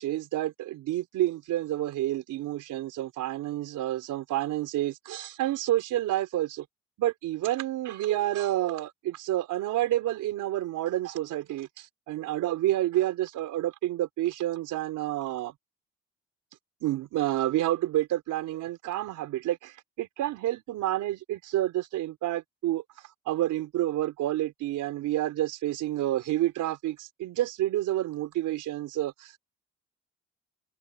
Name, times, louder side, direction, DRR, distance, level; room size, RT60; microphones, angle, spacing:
voice 1, 0.0-6.6 7.0-15.5 16.8-22.8 23.3-29.4, right 14 dB, 85° right, 4.1 m, -29 dB
cardioid pair, 90°, 30 cm